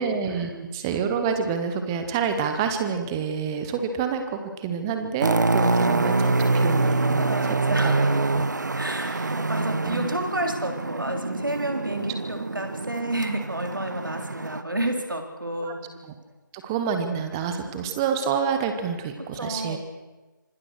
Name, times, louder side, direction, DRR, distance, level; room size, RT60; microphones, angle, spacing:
voice 1, 0.0-7.9 8.3-8.4 9.0-9.3 9.8-10.1 15.6-15.7 16.0-16.1 16.5-19.8, right 6 dB, 10° right, 7 dB, 1.0 m, -28 dB
sound 1, 5.2-14.6, right 3 dB, 60° right, 1.0 m, -25 dB
voice 2, 7.2-8.2 8.7-15.8 19.4-19.8, right 1 dB, 75° right, 4 dB, 4.3 m, -30 dB
25.5 x 18.5 x 6.3 m, 1.2 s
figure-of-eight pair, 155°, 11 cm